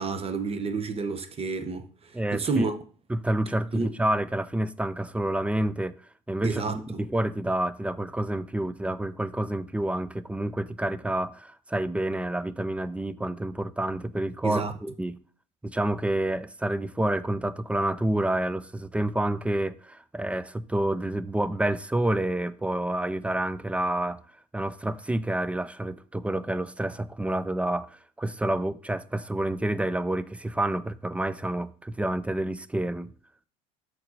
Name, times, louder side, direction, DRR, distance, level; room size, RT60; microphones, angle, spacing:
voice 1, 0.0-2.8 3.7-3.9 6.4-7.0 14.4-14.7, right 4 dB, 30° right, 1.0 m, -30 dB
voice 2, 2.1-2.7 3.1-5.9 6.3-15.2 15.6-24.2 24.5-33.1, right 1 dB, 5° right, 0.4 m, -28 dB
6.4 x 4.2 x 4.1 m
supercardioid pair, 80°, 19 cm